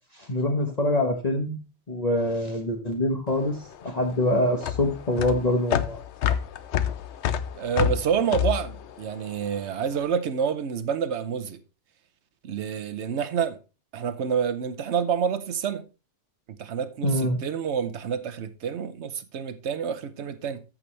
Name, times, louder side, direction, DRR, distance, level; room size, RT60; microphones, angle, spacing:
voice 1, 0.1-1.6 1.9-3.6 3.8-6.0 17.0-17.4, left 1 dB, 35° left, 1.3 m, -25 dB
sound 1, 3.3-9.8, left 9 dB, 85° left, 1.0 m, -28 dB
voice 2, 7.5-11.6 12.4-13.6 13.9-15.9 16.6-20.6, right 7 dB, 80° right, 1.1 m, -28 dB
14.0 x 6.1 x 3.2 m
omnidirectional pair, 1.1 m